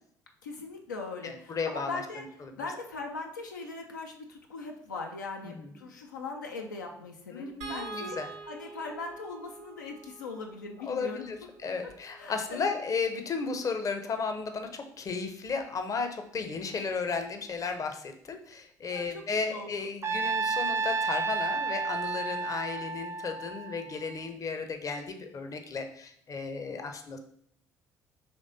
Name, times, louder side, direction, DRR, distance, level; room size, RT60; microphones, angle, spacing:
voice 1, 0.4-2.2 2.6-8.2 8.5-11.3 12.2-12.7 18.9-19.2 19.5-19.9 26.6-26.9, left 3 dB, 85° left, 2 dB, 0.4 m, -40 dB
voice 2, 1.2-2.0 2.4-2.6 5.4-5.8 7.3-8.3 10.9-27.2, left 4 dB, 35° left, 6 dB, 0.6 m, -34 dB
sound 1, 7.6-13.9 15.5-15.6 16.0-16.1, right 4 dB, 70° right, 0.8 m, -47 dB
Trumpet, 20.0-24.2, right 4 dB, 30° right, 0.4 m, -31 dB
5.1 x 3.2 x 2.6 m, 0.66 s
figure-of-eight pair, 55°, 10 cm